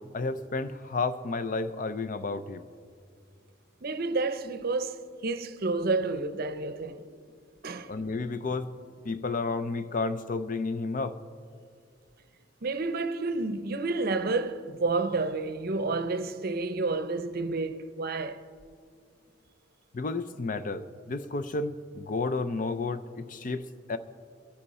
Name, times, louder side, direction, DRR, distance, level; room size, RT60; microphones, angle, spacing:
voice 1, 0.0-2.6 7.9-8.8 9.0-11.2 19.9-24.0, left 3 dB, 45° left, 0.5 m, -32 dB
voice 2, 3.8-7.1 7.6-7.9 12.6-18.4, right 3 dB, 50° right, 0.7 m, -30 dB
23.0 x 10.0 x 4.2 m
head